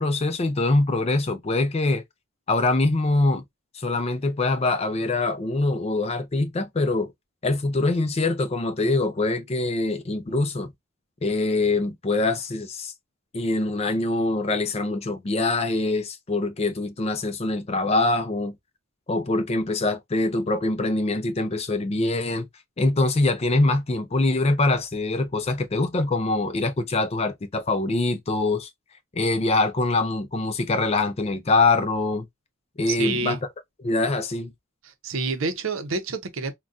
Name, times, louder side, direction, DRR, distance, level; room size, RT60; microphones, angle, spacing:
voice 1, 0.0-2.0 2.5-3.4 3.7-7.1 7.4-10.7 11.2-12.9 13.3-18.5 19.1-22.5 22.8-28.7 29.1-32.3 32.8-33.4 33.8-34.5, left 2 dB, 30° left, 0.4 m, -24 dB
voice 2, 32.9-33.4 34.8-36.5, right 3 dB, 70° right, 0.6 m, -28 dB
3.8 x 2.2 x 2.3 m
head